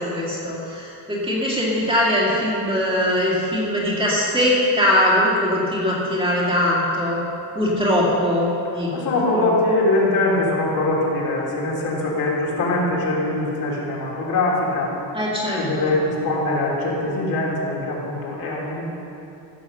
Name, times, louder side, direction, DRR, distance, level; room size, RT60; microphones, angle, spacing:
voice 1, 0.0-7.2 7.5-9.5 15.1-15.9, left 1 dB, 10° right, -6 dB, 2.1 m, -21 dB
voice 2, 8.9-14.9 15.5-18.8, left 2 dB, 55° left, -4 dB, 3.2 m, -22 dB
15.0 x 7.2 x 6.8 m, 2.9 s
cardioid pair, 175°, 44 cm